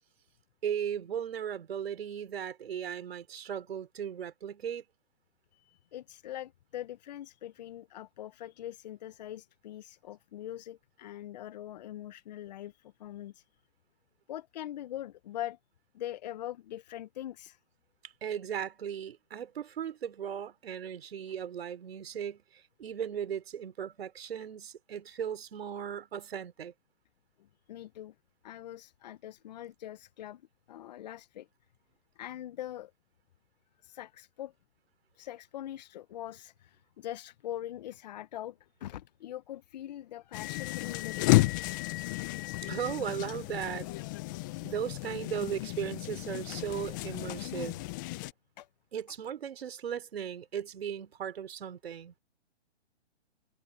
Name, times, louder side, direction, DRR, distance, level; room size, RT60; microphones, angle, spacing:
voice 1, 0.6-4.9 18.0-26.7 42.6-43.9 44.6-47.8 48.9-52.1, right 8 dB, 60° right, 4.5 m, -37 dB
voice 2, 5.5-13.5 14.3-15.6 15.9-17.6 27.7-28.1 28.4-30.4 30.7-31.5 32.2-32.9 33.8-34.5 35.1-41.4 47.7-47.8 48.6-48.7, left 12 dB, 40° left, 1.0 m, -42 dB
sound 1, 40.3-48.3, left 20 dB, 20° left, 0.6 m, -32 dB
hypercardioid pair, 150°, 34 cm